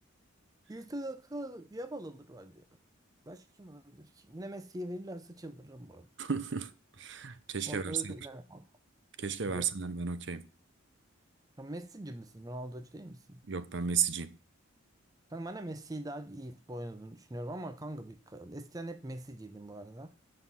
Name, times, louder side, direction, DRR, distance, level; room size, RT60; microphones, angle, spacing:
voice 1, 0.7-2.7 3.3-6.1 7.7-8.7 9.4-9.7 11.6-13.4 15.3-20.1, right 1 dB, 15° right, 0.5 m, -42 dB
voice 2, 6.2-6.7 7.0-8.1 9.2-10.4 13.5-14.4, right 6 dB, 55° right, 0.7 m, -33 dB
8.4 x 5.5 x 5.6 m
head